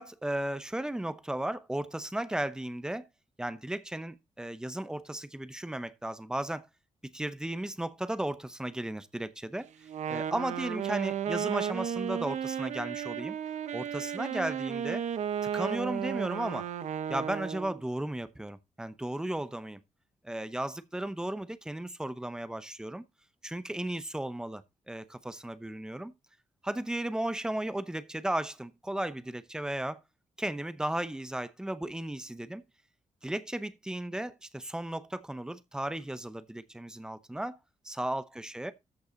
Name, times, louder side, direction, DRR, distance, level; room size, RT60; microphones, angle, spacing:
voice 1, 0.0-3.1 3.4-6.7 7.1-9.7 10.1-13.4 13.7-15.0 15.5-16.7 17.1-19.8 20.2-23.0 23.4-26.1 26.6-30.0 30.4-32.6 33.2-37.6 37.8-38.7, right 1 dB, 5° right, 0.7 m, -35 dB
Wind instrument woodwind instrument, 9.8-17.8, right 9 dB, 70° right, 0.9 m, -34 dB
13.5 x 5.5 x 3.8 m
wide cardioid pair, 180°, 13 cm